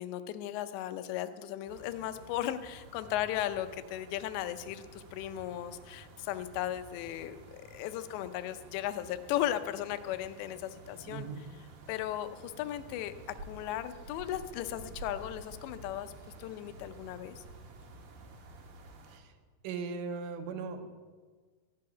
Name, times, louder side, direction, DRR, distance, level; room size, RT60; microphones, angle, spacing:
voice 1, 0.0-11.3 11.9-13.1 13.4-16.1 16.4-17.4, left 12 dB, 85° left, 10 dB, 3.0 m, -36 dB
sound 1, 1.7-19.2, right 3 dB, 60° right, 2.0 m, -51 dB
voice 2, 11.1-11.5 19.1-19.3 19.6-21.0, right 5 dB, 80° right, 7 dB, 3.3 m, -39 dB
14.5 x 7.7 x 9.9 m, 1.5 s
omnidirectional pair, 5.0 m